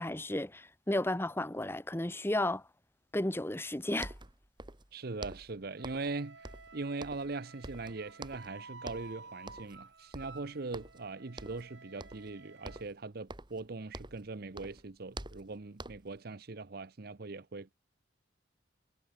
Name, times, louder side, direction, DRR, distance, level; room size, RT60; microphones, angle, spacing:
voice 1, 0.0-2.6 3.1-4.1, left 1 dB, 10° left, 0.9 m, -33 dB
sound 1, 3.7-3.8 4.0-4.9 5.2-6.2 6.4-7.4 7.6-8.5 8.8-9.1 9.5-9.8 10.1-11.1 11.4-11.7 12.0-12.3 12.6-14.3 14.5-16.2, right 2 dB, 25° right, 1.9 m, -47 dB
voice 2, 4.9-6.4 6.7-17.7, right 3 dB, 55° right, 0.8 m, -41 dB
Wind instrument woodwind instrument, 5.8-12.9, right 4 dB, 75° right, 6.9 m, -53 dB
head